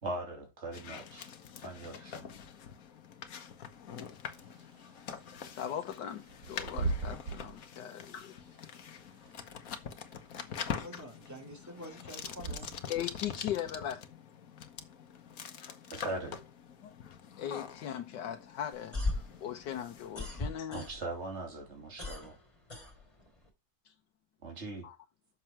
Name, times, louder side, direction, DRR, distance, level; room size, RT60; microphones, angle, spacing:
voice 1, 0.0-1.3 1.6-2.3 15.9-16.4 20.7-22.4 24.4-24.9, right 2 dB, 40° right, 3.0 m, -40 dB
sound 1, 0.7-20.5, left 7 dB, 55° left, 1.4 m, -45 dB
Bird / Wind, 4.3-13.0, right 3 dB, 70° right, 2.5 m, -41 dB
voice 2, 5.5-7.9 10.4-10.6 12.9-14.0 16.8-16.9 17.4-20.9 24.8-25.0, left 10 dB, 80° left, 1.5 m, -39 dB
voice 3, 10.7-12.8, equal, 10° right, 3.1 m, -47 dB
sound 2, 18.7-21.3 21.6-23.5, left 2 dB, 15° left, 3.0 m, -37 dB
7.3 x 6.7 x 4.5 m
omnidirectional pair, 1.9 m